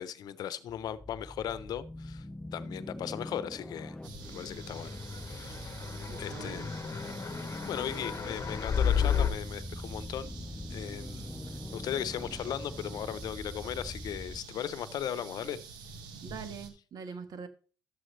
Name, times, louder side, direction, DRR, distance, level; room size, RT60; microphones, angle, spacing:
voice 1, 0.0-4.0 4.3-5.7 6.2-6.8 7.6-10.3 10.7-11.3 11.7-15.6, left 10 dB, 70° left, 0.7 m, -37 dB
sound 1, 0.7-14.4, left 1 dB, 15° left, 0.7 m, -43 dB
sound 2, 4.0-16.7, right 5 dB, 85° right, 1.6 m, -48 dB
sound 3, 4.8-9.3, left 7 dB, 45° left, 0.9 m, -32 dB
voice 2, 6.1-6.7 16.2-17.5, right 6 dB, 60° right, 1.4 m, -43 dB
12.0 x 7.7 x 3.2 m
supercardioid pair, 70°, 7 cm